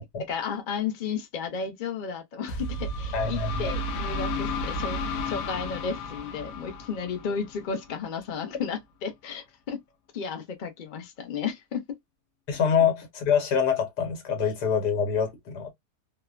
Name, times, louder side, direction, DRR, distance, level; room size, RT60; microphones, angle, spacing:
voice 1, 0.3-5.0 5.3-9.8 10.1-11.8, left 6 dB, 45° left, 0.6 m, -33 dB
sound 1, 2.5-8.1, left 1 dB, 70° left, 0.9 m, -32 dB
voice 2, 3.1-3.7 12.5-15.7, left 7 dB, 90° left, 1.6 m, -25 dB
3.1 x 2.1 x 2.3 m
omnidirectional pair, 1.7 m